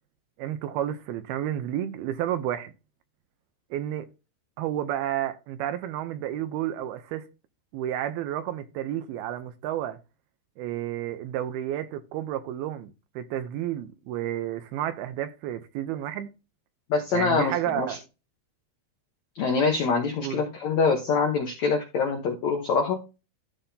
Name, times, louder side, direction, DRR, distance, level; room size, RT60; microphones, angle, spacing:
voice 1, 0.4-2.7 3.7-4.1 4.6-7.3 7.7-10.0 10.6-16.3 17.1-18.0 20.2-20.4, right 11 dB, 80° right, 2.3 m, -31 dB
voice 2, 16.9-18.0 19.3-23.0, left 5 dB, 85° left, 1.5 m, -25 dB
14.0 x 5.5 x 2.8 m
omnidirectional pair, 5.1 m